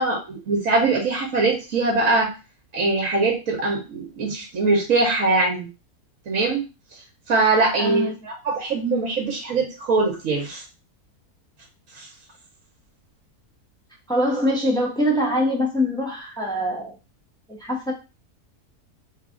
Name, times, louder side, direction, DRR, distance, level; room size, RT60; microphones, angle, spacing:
voice 1, 0.0-2.3 2.7-5.7 6.3-6.6 7.3-10.6 12.0-12.1, right 3 dB, 65° right, 0 dB, 1.2 m, -22 dB
voice 2, 7.8-8.1 14.1-16.9 17.5-17.9, equal, 5° left, -3 dB, 0.5 m, -23 dB
3.2 x 2.3 x 3.6 m, 0.29 s
omnidirectional pair, 1.6 m